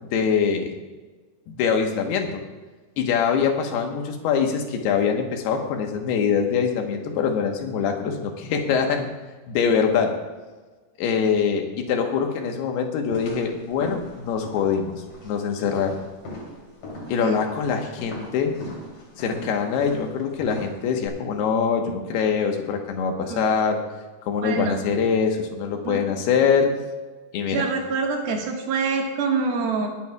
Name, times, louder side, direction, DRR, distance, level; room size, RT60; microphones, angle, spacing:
voice 1, 0.0-0.7 1.5-2.4 3.0-9.1 9.5-10.1 11.0-16.0 17.1-18.5 19.2-23.8 24.3-26.7 27.3-27.7, left 6 dB, 75° left, 3 dB, 3.2 m, -23 dB
sound 1, 13.1-21.1, left 1 dB, 55° left, 4.6 m, -39 dB
voice 2, 24.4-24.8 25.9-26.0 27.5-29.9, right 4 dB, 70° right, 0 dB, 3.4 m, -25 dB
21.5 x 11.0 x 2.4 m, 1.3 s
omnidirectional pair, 4.7 m